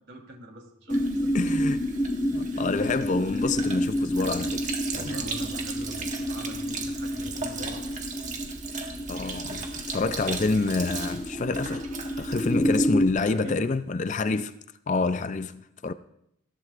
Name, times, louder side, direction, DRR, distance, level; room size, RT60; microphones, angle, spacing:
voice 1, 0.1-1.4 2.5-2.8 4.9-8.1 13.1-13.7 14.1-14.4 14.9-15.2, right 1 dB, 50° right, 3.4 m, -43 dB
sound 1, 0.9-13.1, equal, 15° left, 1.1 m, -29 dB
Sink (filling or washing), 0.9-13.2, right 4 dB, 35° right, 1.6 m, -38 dB
voice 2, 1.3-1.9 2.3-5.2 9.1-11.8 12.2-14.5 14.9-15.9, left 3 dB, 35° left, 0.4 m, -28 dB
20.5 x 15.5 x 2.5 m
head